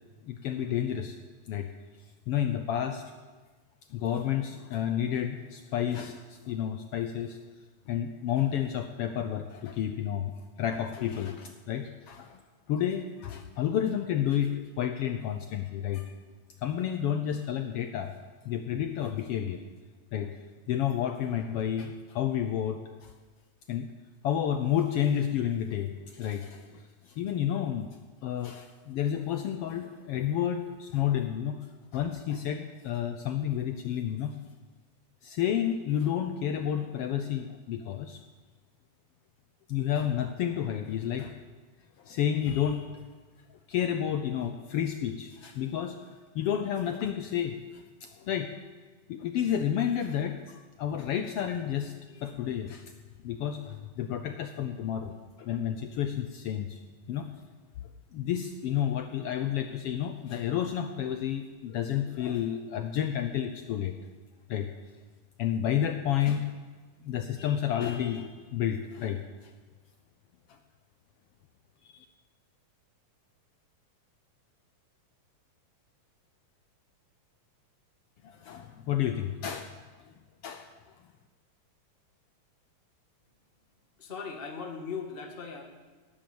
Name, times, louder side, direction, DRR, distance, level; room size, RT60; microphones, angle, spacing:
voice 1, 0.3-1.2 1.5-1.7 2.3-3.0 3.9-7.4 7.9-10.3 10.6-12.4 12.7-16.1 16.6-18.1 18.4-19.6 20.1-20.4 20.7-23.1 23.7-23.9 24.2-27.9 28.2-31.7 31.9-34.4 35.2-38.2 39.7-41.3 42.0-42.9 43.7-46.0 46.3-48.5 49.1-52.8 53.2-56.8 57.1-57.3 58.1-63.9 64.5-64.7 65.4-66.5 67.0-69.2 71.9-72.0 78.2-79.7 80.4-80.7, left 10 dB, 90° left, 7 dB, 1.3 m, -30 dB
voice 2, 84.0-85.6, left 5 dB, 30° left, 3 dB, 1.1 m, -38 dB
18.5 x 10.5 x 7.1 m, 1.4 s
omnidirectional pair, 3.7 m